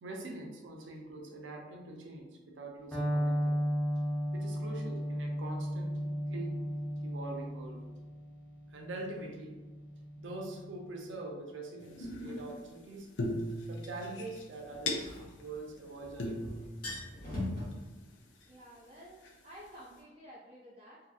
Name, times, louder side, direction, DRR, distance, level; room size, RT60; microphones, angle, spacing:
voice 1, 0.0-3.6 4.3-6.0 6.3-6.6 7.0-7.8 8.7-9.6 10.2-13.1 13.7-16.7, right 2 dB, 85° right, 1 dB, 0.5 m, -44 dB
Electric guitar, 2.9-10.8, equal, 5° left, 0.7 m, -35 dB
sound 1, 11.8-12.7 13.2-15.4 15.8-15.9 16.2-17.7 18.4-18.5 19.2-19.7, left 1 dB, 80° left, 0.5 m, -39 dB
sound 2, 12.3-12.4 14.7-16.0 16.3-16.4 16.6-17.7, left 1 dB, 50° left, 0.9 m, -39 dB
voice 2, 18.5-21.0, equal, 35° right, -6 dB, 0.4 m, -52 dB
2.6 x 2.6 x 2.3 m, 1.2 s
head